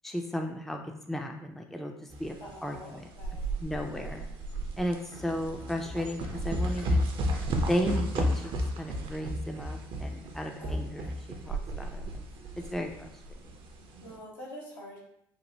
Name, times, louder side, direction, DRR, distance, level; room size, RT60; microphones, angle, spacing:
voice 1, 0.0-1.9 2.2-2.4 2.6-3.1 3.6-4.3 4.8-7.1 7.7-8.5 8.8-11.2 11.5-12.0 12.6-13.1, equal, ahead, 3 dB, 0.4 m, -34 dB
sound 1, 2.1-14.1, equal, 50° right, 0.5 m, -33 dB
voice 2, 2.4-3.6 10.6-10.8 14.0-15.0, equal, 85° left, -5 dB, 0.9 m, -46 dB
Walk footsteps, 5.1-9.2 9.5-9.6, right 1 dB, 55° left, 1.0 m, -50 dB
3.2 x 2.1 x 2.7 m, 0.73 s
hypercardioid pair, 60°, 11 cm